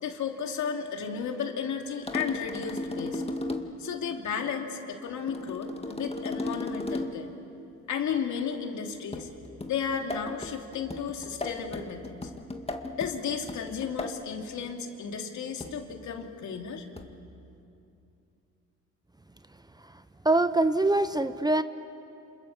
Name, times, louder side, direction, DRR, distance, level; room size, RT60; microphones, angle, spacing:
voice 1, 0.0-3.2 3.8-7.3 7.9-9.3 9.7-12.3 13.0-16.9, left 6 dB, 70° left, 3 dB, 2.8 m, -33 dB
sound 1, 2.1-3.9 5.3-7.3 9.1-14.3 15.6-16.0 17.0-17.3, left 2 dB, 20° left, 1.9 m, -36 dB
voice 2, 20.2-21.6, right 2 dB, 15° right, 11 dB, 0.9 m, -23 dB
29.0 x 27.5 x 7.2 m, 2.7 s
cardioid pair, 90°, 30 cm